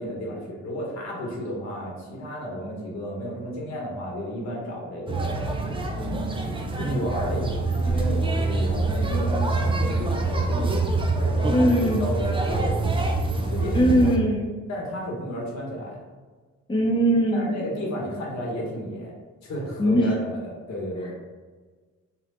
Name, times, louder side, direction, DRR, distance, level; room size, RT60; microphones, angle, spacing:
voice 1, 0.0-5.5 6.8-13.1 13.5-14.0 14.7-16.0 17.3-19.1 19.4-21.1, equal, 65° left, -2 dB, 1.5 m, -32 dB
sound 1, 5.1-14.2, right 3 dB, 15° right, 0.6 m, -25 dB
voice 2, 11.5-12.1 13.7-14.5 16.7-17.6 19.8-20.1, equal, 15° left, -3 dB, 0.9 m, -21 dB
4.4 x 2.4 x 3.9 m, 1.4 s
cardioid pair, 90°, 30 cm